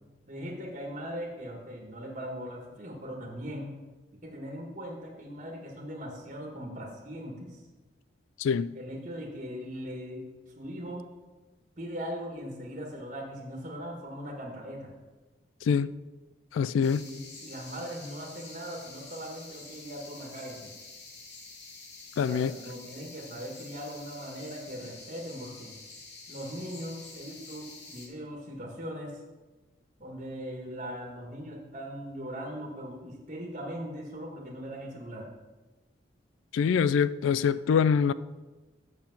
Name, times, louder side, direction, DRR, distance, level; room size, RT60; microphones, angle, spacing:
voice 1, 0.3-3.7 4.2-7.6 8.7-10.2 10.5-11.1 11.8-14.9 16.9-20.7 22.2-25.7 26.3-29.2 30.0-35.3, equal, 40° right, -1 dB, 1.6 m, -40 dB
voice 2, 8.4-8.8 15.6-15.9 16.5-17.0 22.2-22.5 36.5-38.1, left 6 dB, 90° left, 16 dB, 0.3 m, -24 dB
sound 1, 16.8-28.1, left 3 dB, 60° left, 1.9 m, -48 dB
6.7 x 5.9 x 7.1 m, 1.2 s
head